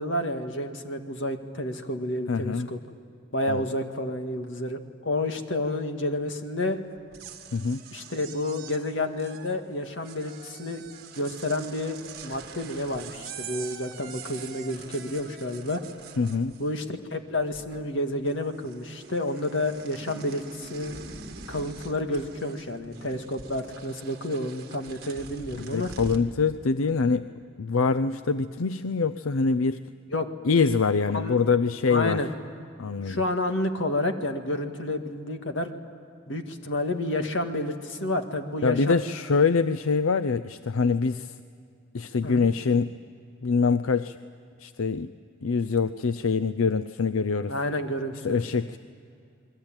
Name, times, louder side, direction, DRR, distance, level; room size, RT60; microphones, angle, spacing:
voice 1, 0.0-2.8 3.3-6.8 7.9-10.9 11.2-12.0 12.2-15.8 16.6-21.0 21.5-25.9 30.1-30.3 31.1-31.4 31.9-32.3 33.0-35.7 36.3-39.0 42.2-42.5 47.5-48.4, left 1 dB, 65° left, 6 dB, 1.9 m, -30 dB
voice 2, 2.3-2.7 3.5-3.6 7.5-7.8 16.2-16.6 25.6-27.3 27.6-29.8 30.4-32.2 32.8-33.2 38.6-41.3 41.9-43.0 43.4-44.2 44.6-45.1 45.4-47.5 48.2-48.8, left 4 dB, 90° left, 12 dB, 0.6 m, -24 dB
sound 1, 7.0-17.0 17.3-18.0 18.3-26.3, right 5 dB, 50° right, 1.9 m, -44 dB
29.0 x 21.5 x 9.0 m, 2.4 s
head